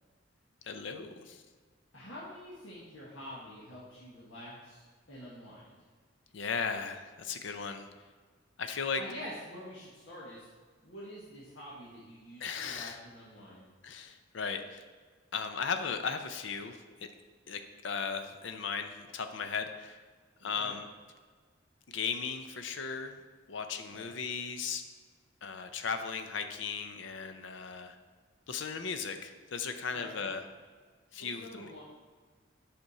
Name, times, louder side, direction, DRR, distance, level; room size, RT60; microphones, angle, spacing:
voice 1, 0.6-1.4 6.3-7.9 8.6-9.0 12.4-13.0 13.8-14.8 15.3-17.1 17.5-20.0 20.4-20.9 21.9-23.2 23.5-24.8 25.4-27.9 28.5-30.4 31.1-31.7, left 5 dB, 70° left, 7 dB, 0.5 m, -36 dB
voice 2, 1.9-4.8 5.1-5.8 9.0-10.5 10.8-13.7 20.4-20.8 23.9-24.1 29.9-30.3 31.4-31.8, equal, 85° left, -8 dB, 1.6 m, -47 dB
8.0 x 5.1 x 4.2 m, 1.5 s
head